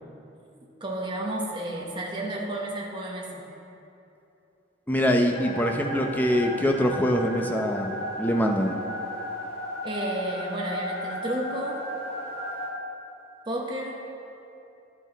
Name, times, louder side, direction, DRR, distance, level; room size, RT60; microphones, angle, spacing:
voice 1, 0.8-3.4 9.8-11.8 13.5-14.0, right 1 dB, 25° right, -2 dB, 0.9 m, -32 dB
voice 2, 4.9-8.8, equal, 10° left, 2 dB, 0.5 m, -24 dB
sound 1, 5.3-12.7, left 1 dB, 55° left, 1.7 m, -35 dB
12.0 x 6.2 x 4.0 m, 2.8 s
head